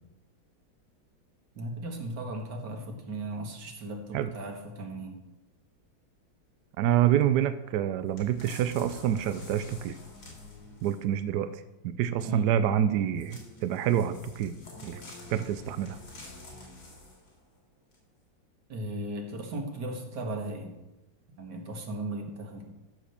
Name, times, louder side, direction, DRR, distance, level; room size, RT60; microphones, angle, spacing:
voice 1, 1.6-5.2 12.2-12.6 18.7-20.7 21.4-22.7, right 1 dB, 60° right, 3 dB, 2.2 m, -36 dB
voice 2, 6.8-10.0 10.8-14.5 14.8-15.0 15.3-16.0, right 10 dB, 75° right, 11 dB, 0.9 m, -27 dB
sound 1, 8.2-11.2 13.2-17.3 17.9-18.0, left 2 dB, 75° left, 3.9 m, -47 dB
14.0 x 4.9 x 6.7 m, 0.99 s
omnidirectional pair, 2.2 m